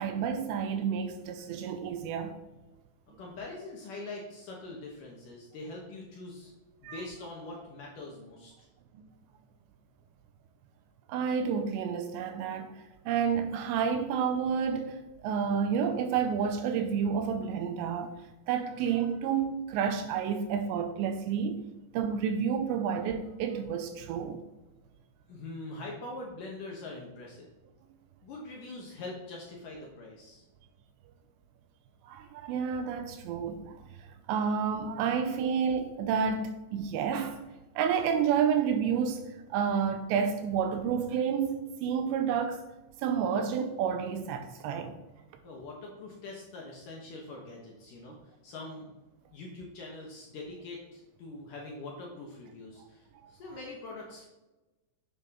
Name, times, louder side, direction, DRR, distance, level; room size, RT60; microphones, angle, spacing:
voice 1, 0.0-2.4 6.8-7.0 8.9-9.0 11.1-21.6 21.9-24.4 32.0-37.4 37.8-42.6 43.0-45.0 48.1-48.2 53.2-53.3, right 7 dB, 80° right, 2.7 m, -30 dB
voice 2, 3.2-6.5 6.8-8.7 25.3-27.5 28.2-30.4 45.4-48.2 48.4-48.9 49.3-54.3, left 2 dB, 65° left, 2.3 m, -43 dB
9.7 x 7.8 x 3.7 m
omnidirectional pair, 5.4 m